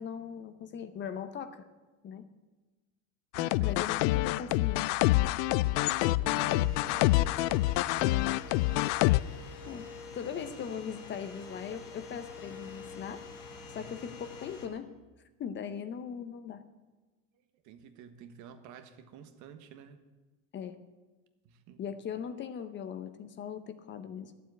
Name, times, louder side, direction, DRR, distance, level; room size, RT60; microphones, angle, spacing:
voice 1, 0.0-1.7 2.0-2.3 3.6-4.9 9.7-9.9 10.1-13.3 13.7-14.9 15.4-16.6 20.5-20.8 21.8-24.4, left 7 dB, 30° left, 11 dB, 0.9 m, -39 dB
sound 1, 3.3-9.2, left 18 dB, 70° left, 0.5 m, -26 dB
voice 2, 3.3-4.7 5.6-9.1 13.8-14.0 17.3-20.0 21.4-21.8, right 8 dB, 55° right, 9 dB, 1.4 m, -50 dB
sound 2, 6.4-14.7, left 5 dB, 85° left, 3.3 m, -46 dB
12.0 x 7.5 x 9.6 m, 1.2 s
supercardioid pair, 135°, 36 cm